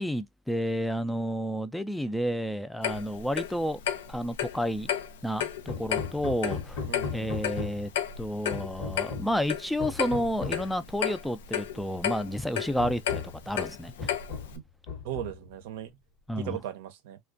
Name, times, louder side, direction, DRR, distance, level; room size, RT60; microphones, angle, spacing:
voice 1, 0.0-3.8 4.1-4.9 5.2-6.8 7.1-7.9 8.2-14.2 16.3-16.6, equal, 5° left, 0.4 m, -31 dB
Clock, 2.8-14.6, left 9 dB, 85° left, 0.4 m, -33 dB
Hammer, 5.7-8.0 8.5-9.4 9.8-10.7 11.7-11.8 12.3-12.4 12.8-13.4 14.0-14.6 14.9-15.5, left 5 dB, 65° left, 1.0 m, -37 dB
voice 2, 6.9-7.3 14.5-14.6 15.0-15.9 16.4-17.2, right 12 dB, 75° right, 0.5 m, -37 dB
2.4 x 2.2 x 2.4 m
supercardioid pair, 100°, 0 cm